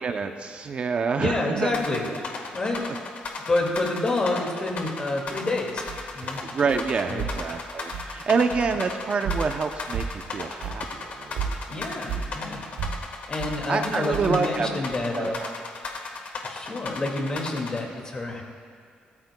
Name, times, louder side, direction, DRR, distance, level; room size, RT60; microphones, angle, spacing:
voice 1, 0.0-1.7 6.4-11.6 12.1-12.2 13.7-14.8 15.1-15.5, right 5 dB, 45° right, 6 dB, 0.6 m, -27 dB
voice 2, 1.2-2.1 2.5-2.8 3.5-5.8 6.1-6.4 7.1-7.3 8.2-8.4 11.7-12.6 13.3-15.4 16.4-18.4, left 2 dB, 30° left, 1 dB, 2.1 m, -28 dB
sound 1, 1.7-17.8, left 4 dB, 60° left, 1.4 m, -35 dB
sound 2, 5.4-5.5 5.8-6.4 6.7-6.9 7.2-7.5 7.9-8.2 8.5-8.9 9.2-9.6 9.9-10.3 10.6-10.8 11.1-11.2 11.3-12.3 12.8-13.0 13.4-13.6 14.1-14.5 14.9-15.0, right 6 dB, 90° right, 1.1 m, -32 dB
21.5 x 13.5 x 2.2 m, 2.2 s
cardioid pair, 120°, 3 cm